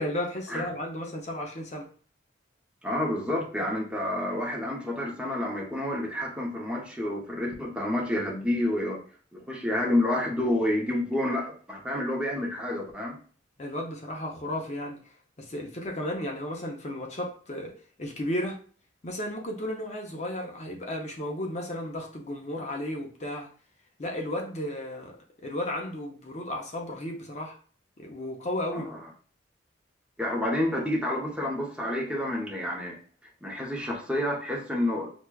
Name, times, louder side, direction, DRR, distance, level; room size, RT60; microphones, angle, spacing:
voice 1, 0.0-1.9 13.6-18.6 19.0-23.5 24.0-25.2 25.4-27.6 28.0-28.9, left 1 dB, 35° left, 1 dB, 0.5 m, -34 dB
voice 2, 2.8-9.0 9.3-13.2 28.7-29.0 30.2-33.0 33.4-35.1, left 1 dB, 5° right, -1 dB, 0.6 m, -29 dB
5.9 x 2.2 x 2.2 m, 0.43 s
head